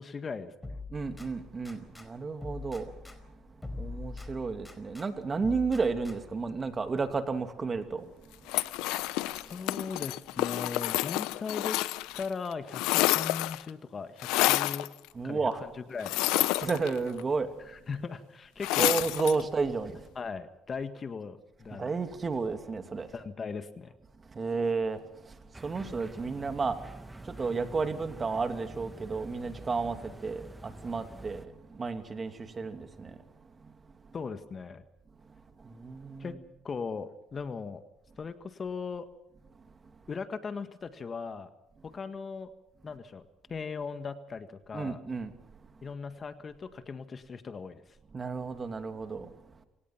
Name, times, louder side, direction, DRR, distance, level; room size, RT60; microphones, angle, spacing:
voice 1, 0.0-0.8 9.5-11.8 12.2-14.9 15.2-15.5 15.7-16.1 17.6-18.9 20.1-21.9 23.1-23.9 34.1-34.8 36.2-36.4 36.6-37.8 38.2-39.1 40.1-41.5 41.8-42.5 42.8-43.2 43.5-45.0 45.8-47.8, left 5 dB, 35° left, 1.8 m, -38 dB
sound 1, 0.6-2.1 2.4-5.1 5.4-6.5, left 3 dB, 15° left, 4.7 m, -43 dB
voice 2, 0.9-2.9 3.8-8.1 8.8-9.4 15.1-15.6 16.6-17.5 18.8-20.1 21.7-23.1 24.3-26.9 27.2-33.7 35.6-36.4 44.7-45.3 48.1-49.3, right 4 dB, 30° right, 2.7 m, -32 dB
sound 2, 8.5-12.3 12.5-13.7 14.2-14.9 16.0-17.2 18.6-19.4, left 18 dB, 80° left, 0.7 m, -29 dB
sound 3, 25.5-31.5, right 1 dB, 15° right, 1.9 m, -46 dB
27.0 x 18.5 x 5.9 m
supercardioid pair, 75°, 0 cm